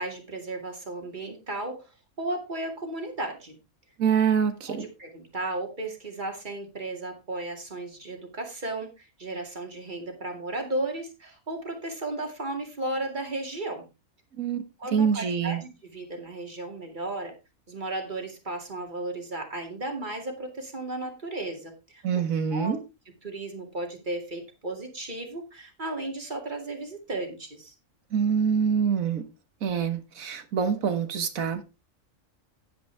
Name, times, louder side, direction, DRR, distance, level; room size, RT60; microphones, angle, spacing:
voice 1, 0.0-1.9 2.2-3.6 4.7-13.8 14.8-17.3 17.7-22.0 22.5-22.8 23.2-27.7, right 2 dB, 35° right, 2.4 m, -34 dB
voice 2, 4.0-4.9 14.4-14.6 14.9-15.6 22.0-22.8 28.1-29.3 29.6-31.6, right 7 dB, 85° right, 1.7 m, -25 dB
10.5 x 9.6 x 3.4 m
omnidirectional pair, 1.4 m